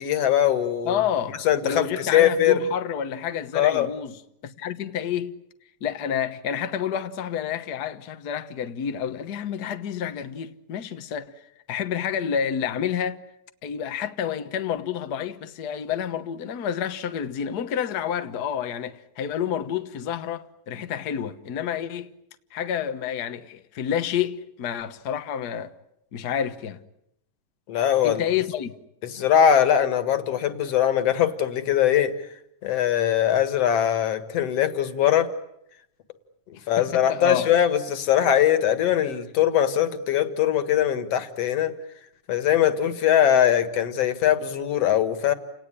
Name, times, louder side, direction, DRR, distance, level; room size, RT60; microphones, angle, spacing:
voice 1, 0.0-1.0 1.4-2.6 3.5-3.9 27.7-28.2 29.0-32.1 32.6-35.3 36.5-41.7 42.3-45.3, left 10 dB, 55° left, 2.4 m, -21 dB
voice 2, 0.8-4.1 4.4-5.4 5.8-11.3 11.7-13.2 13.6-22.1 22.5-25.7 26.1-26.8 28.0-28.8 36.8-37.5, left 8 dB, 85° left, 0.8 m, -29 dB
30.0 x 18.5 x 9.9 m
omnidirectional pair, 3.7 m